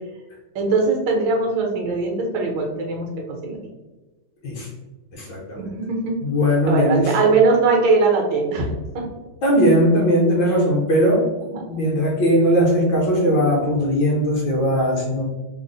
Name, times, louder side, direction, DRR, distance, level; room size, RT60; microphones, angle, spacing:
voice 1, 0.5-3.6 5.6-6.2 6.7-8.7 8.9-9.0 11.5-11.8, right 3 dB, 70° right, 1 dB, 1.3 m, -21 dB
voice 2, 5.1-5.6 6.2-7.1 9.4-11.3 11.7-15.2, equal, 70° left, -2 dB, 1.3 m, -19 dB
3.6 x 2.0 x 3.8 m, 1.1 s
omnidirectional pair, 2.3 m